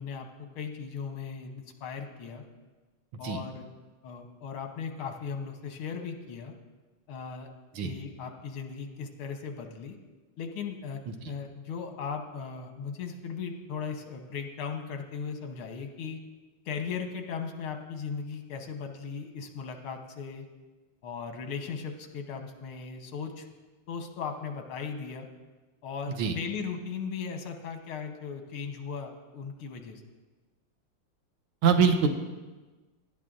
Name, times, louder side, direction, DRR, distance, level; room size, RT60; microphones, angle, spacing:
voice 1, 0.0-2.4 3.2-3.7 4.0-6.5 7.1-7.5 7.8-10.0 10.4-16.2 16.7-20.5 21.0-23.5 23.9-25.3 25.8-30.0, left 6 dB, 85° left, 4 dB, 1.9 m, -37 dB
voice 2, 31.6-32.1, right 6 dB, 85° right, 6 dB, 1.8 m, -24 dB
18.0 x 11.0 x 2.6 m, 1.3 s
omnidirectional pair, 2.3 m